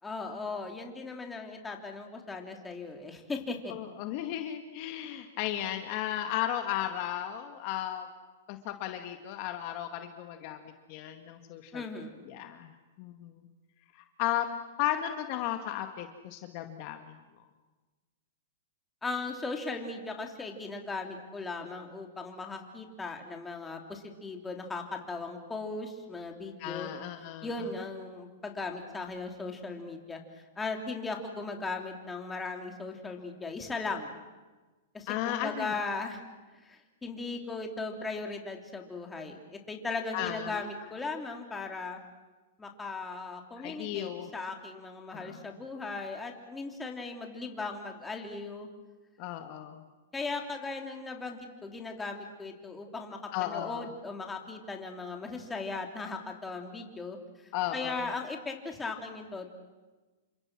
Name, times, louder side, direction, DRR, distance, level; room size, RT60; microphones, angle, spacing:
voice 1, 0.0-3.7 11.7-12.3 19.0-26.9 27.4-30.2 30.6-34.2 34.9-36.2 36.6-42.0 42.6-48.7 50.1-57.2 57.7-59.5, left 3 dB, 10° left, 3 dB, 3.2 m, -38 dB
voice 2, 3.7-8.1 8.5-10.6 10.9-11.8 12.3-12.7 13.0-13.5 14.2-14.5 14.8-17.2 26.6-27.5 35.1-35.7 40.1-40.7 43.6-44.3 45.1-45.4 49.2-49.8 53.3-53.9 57.5-58.1, left 12 dB, 45° left, 6 dB, 2.0 m, -35 dB
29.0 x 25.5 x 6.2 m, 1.2 s
hypercardioid pair, 145°, 0 cm